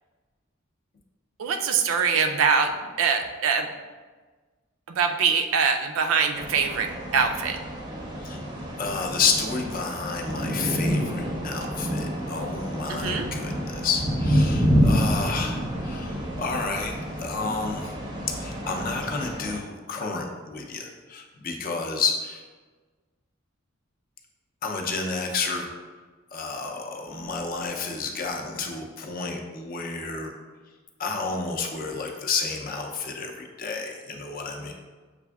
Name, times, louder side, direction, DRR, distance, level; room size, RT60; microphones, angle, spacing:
voice 1, 1.4-3.7 4.9-7.6 12.9-13.3, right 5 dB, 75° right, 5 dB, 0.4 m, -23 dB
sound 1, 6.3-19.6, equal, 20° right, 0.5 m, -28 dB
voice 2, 8.8-16.9 17.2-17.9 18.4-22.4 24.6-25.8 26.3-30.3 31.0-34.7, left 4 dB, 45° left, 2 dB, 0.5 m, -30 dB
6.6 x 2.5 x 2.3 m, 1.4 s
head